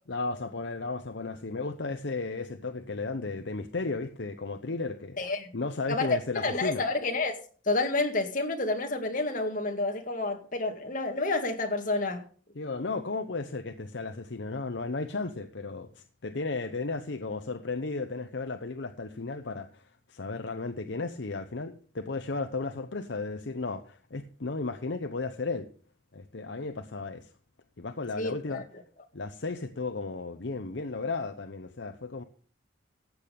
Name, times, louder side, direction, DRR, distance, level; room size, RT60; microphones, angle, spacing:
voice 1, 0.1-5.2 5.5-6.8 12.6-25.7 26.1-27.3 27.8-28.6 29.1-32.2, left 3 dB, 60° left, 0.8 m, -34 dB
voice 2, 5.2-5.5 5.9-7.4 7.7-12.2 28.2-28.6, left 2 dB, 40° left, 2.1 m, -29 dB
14.5 x 8.6 x 5.3 m
head